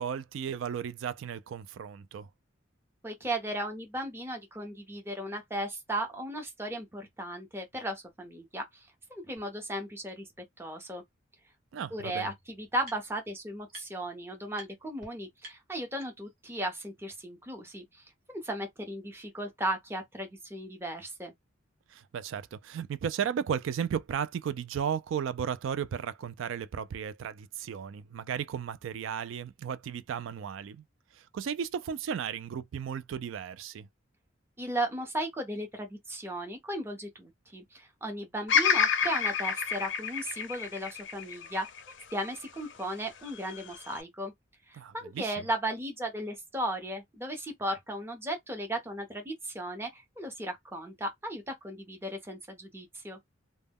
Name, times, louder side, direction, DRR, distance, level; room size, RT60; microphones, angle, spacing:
voice 1, 0.0-2.3 11.7-12.3 21.9-30.8 31.1-33.9 44.7-45.4, right 8 dB, 75° right, 0.3 m, -35 dB
voice 2, 3.0-11.0 11.9-21.3 34.6-44.3 44.7-53.2, right 1 dB, 10° right, 0.6 m, -36 dB
sound 1, 9.4-9.5 10.1-10.2 11.5-11.6 11.8-13.3 13.7-14.1 14.5-14.7 15.0-15.1 15.4-16.4, right 1 dB, 50° right, 1.0 m, -51 dB
Bird vocalization bird call bird song, 38.5-42.7 43.3-44.0, left 7 dB, 65° left, 0.4 m, -29 dB
2.2 x 2.1 x 3.4 m
head